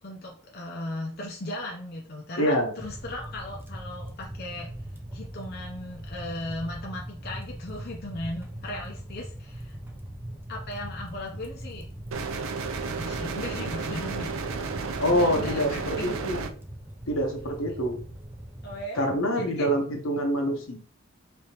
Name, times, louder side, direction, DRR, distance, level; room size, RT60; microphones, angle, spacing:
voice 1, 0.0-4.7 5.1-9.8 10.5-11.9 12.8-14.4 14.9-16.1 18.6-19.7, left 1 dB, 50° left, 0 dB, 0.6 m, -37 dB
voice 2, 2.4-2.7 15.0-16.5 17.1-18.0 18.9-20.8, equal, 75° left, 2 dB, 0.9 m, -26 dB
sound 1, 2.8-18.8, right 1 dB, 10° right, 0.5 m, -41 dB
sound 2, 12.1-16.5, right 4 dB, 70° right, 0.5 m, -32 dB
3.5 x 3.4 x 2.9 m, 0.43 s
head